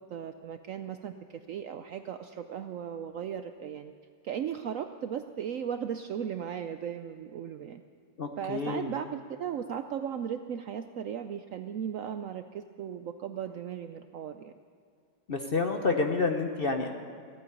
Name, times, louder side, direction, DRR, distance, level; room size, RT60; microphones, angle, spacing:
voice 1, 0.1-1.1 1.5-3.9 4.2-7.8 8.4-14.5, right 8 dB, 70° right, 8 dB, 0.8 m, -36 dB
voice 2, 8.2-8.9 15.3-16.9, left 4 dB, 45° left, 4 dB, 0.7 m, -29 dB
15.5 x 9.1 x 9.6 m, 2.3 s
omnidirectional pair, 1.9 m